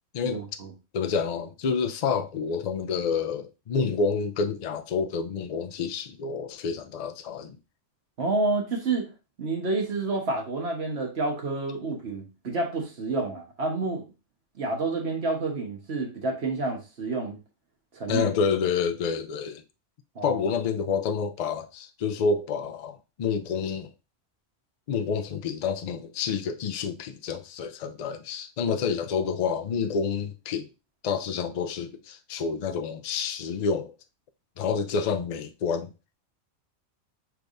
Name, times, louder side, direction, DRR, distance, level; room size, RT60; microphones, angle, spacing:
voice 1, 0.2-0.7 8.2-9.1 9.4-14.0 14.6-17.4 17.9-18.3 20.1-20.4, right 3 dB, 60° right, 1.5 m, -29 dB
voice 2, 0.9-7.6 18.1-19.6 20.2-23.9 24.9-30.7 31.0-33.9 34.6-35.9, left 5 dB, 60° left, 0.4 m, -28 dB
5.8 x 3.4 x 2.6 m
omnidirectional pair, 1.3 m